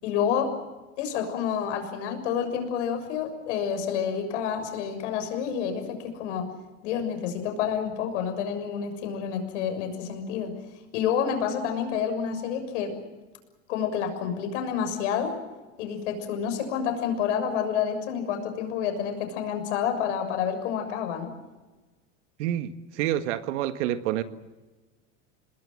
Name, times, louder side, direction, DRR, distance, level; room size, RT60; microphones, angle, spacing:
voice 1, 0.0-0.5 1.0-6.5 6.8-10.5 10.9-13.0 13.7-15.3 15.8-21.3, left 8 dB, 80° left, 6.8 m, -29 dB
voice 2, 22.4-24.2, right 12 dB, 80° right, 1.7 m, -28 dB
27.5 x 20.0 x 7.7 m
supercardioid pair, 135°, 36 cm